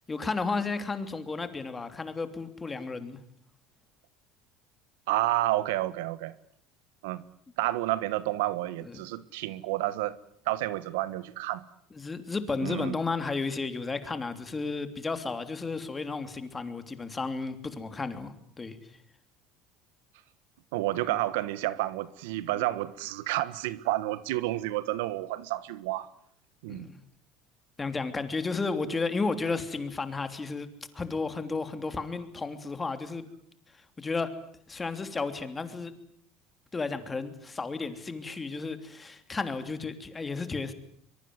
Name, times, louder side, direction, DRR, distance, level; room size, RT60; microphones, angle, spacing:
voice 1, 0.1-3.2 8.8-9.0 12.0-18.8 22.5-22.6 26.7-26.9 27.8-30.7 30.9-33.2 34.0-34.3 34.7-35.9 36.7-40.7, left 4 dB, 20° left, 3.1 m, -33 dB
voice 2, 5.1-6.3 7.0-7.2 7.6-10.2 10.4-11.6 12.6-12.9 20.7-26.1 26.6-26.9, right 16 dB, 90° right, 1.3 m, -30 dB
23.5 x 23.0 x 9.6 m
supercardioid pair, 120°, 0 cm